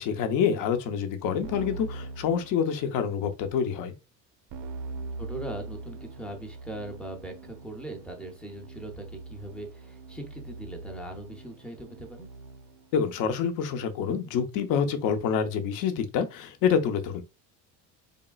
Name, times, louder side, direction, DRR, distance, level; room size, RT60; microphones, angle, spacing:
voice 1, 0.0-3.9 12.9-17.2, left 7 dB, 60° left, 0.7 m, -27 dB
Keyboard (musical), 1.4-3.1 4.5-12.9, right 3 dB, 60° right, 0.6 m, -42 dB
voice 2, 5.2-12.3, right 1 dB, 5° left, 0.5 m, -40 dB
4.0 x 3.5 x 2.2 m
cardioid pair, 175°, 35 cm